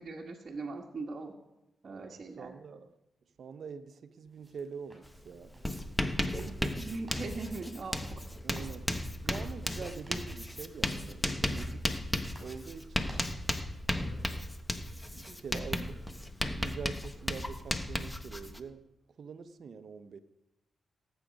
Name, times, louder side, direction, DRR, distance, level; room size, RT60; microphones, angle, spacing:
voice 1, 0.0-1.3 1.8-2.5 6.3-8.2, right 3 dB, 45° right, 1.4 m, -40 dB
voice 2, 1.8-2.9 3.4-5.6 8.4-8.9 9.2-12.0 12.4-13.2 14.0-14.5 15.1-16.1 16.5-18.9 19.2-20.2, right 5 dB, 65° right, 0.8 m, -45 dB
sound 1, 4.3-14.4, right 1 dB, 15° right, 6.2 m, -58 dB
Writing, 5.1-5.2 5.5-18.6, left 1 dB, 10° left, 1.1 m, -35 dB
18.0 x 8.3 x 5.2 m
cardioid pair, 75°, 0 cm